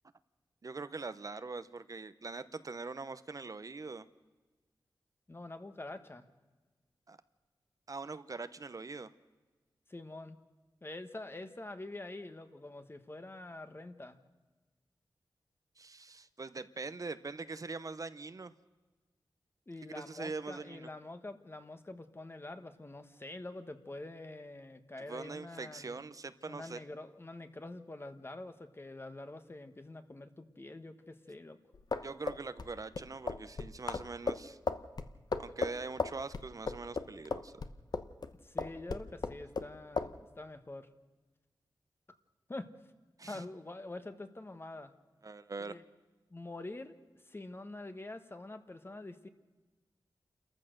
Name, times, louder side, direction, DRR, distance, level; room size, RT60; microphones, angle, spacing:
voice 1, 0.6-4.0 7.1-7.2 7.9-9.1 15.8-18.5 19.9-20.9 25.1-26.8 32.0-34.6 35.4-37.5 43.2-43.4 45.2-45.8, right 3 dB, 45° right, 13 dB, 0.7 m, -42 dB
voice 2, 5.3-6.3 9.9-10.4 10.8-14.2 19.7-26.1 26.5-31.6 38.4-40.9 42.5-42.7 43.3-44.9 45.6-45.8 46.3-49.3, left 2 dB, 30° left, 9 dB, 1.4 m, -46 dB
sound 1, 31.7-38.3 38.6-39.7 40.0-40.1, left 4 dB, 55° left, 1.0 m, -35 dB
28.5 x 14.5 x 6.6 m, 1.3 s
wide cardioid pair, 70°, 8 cm